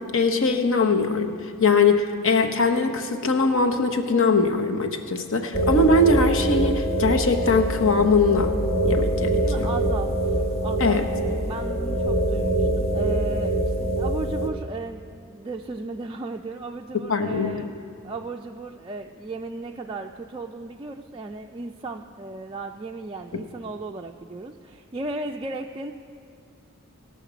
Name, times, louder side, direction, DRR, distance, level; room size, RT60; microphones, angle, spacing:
voice 1, 0.0-8.5 8.8-9.7 10.8-11.1 16.9-17.7, left 3 dB, 60° left, 5 dB, 0.9 m, -21 dB
sound 1, 5.5-14.5, right 1 dB, 30° left, 1.0 m, -24 dB
voice 2, 9.4-11.0 11.4-17.7 18.0-25.9, right 2 dB, 20° right, 1 dB, 0.3 m, -35 dB
19.0 x 6.5 x 5.0 m, 2.4 s
head